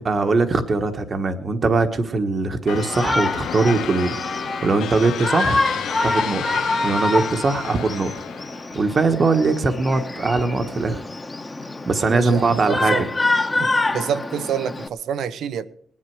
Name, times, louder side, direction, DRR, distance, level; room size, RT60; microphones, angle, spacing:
voice 1, 0.0-4.1 4.6-5.6 6.0-6.4 6.8-8.1 8.7-11.0 11.9-13.0, right 3 dB, 40° right, 1.2 m, -21 dB
sound 1, 2.7-8.9, left 10 dB, 85° left, 0.8 m, -32 dB
Shout, 2.8-14.9, left 2 dB, 20° left, 1.2 m, -26 dB
voice 2, 12.1-13.1 13.6-15.7, right 8 dB, 70° right, 0.8 m, -27 dB
19.0 x 11.0 x 4.8 m
cardioid pair, 90°, 0 cm